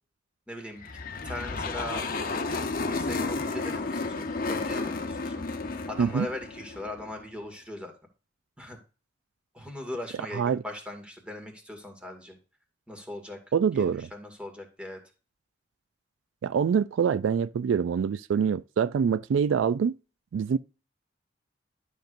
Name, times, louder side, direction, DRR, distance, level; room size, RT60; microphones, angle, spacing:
voice 1, 0.5-0.9 1.2-5.5 5.9-7.9 8.6-8.8 9.5-12.4 12.9-13.4 13.7-15.0, left 1 dB, 5° right, 2.1 m, -39 dB
sound 1, 0.8-7.2, left 3 dB, 50° left, 0.9 m, -32 dB
voice 2, 13.5-14.1 16.4-20.0 20.3-20.6, right 7 dB, 85° right, 0.3 m, -25 dB
12.0 x 6.5 x 2.6 m
head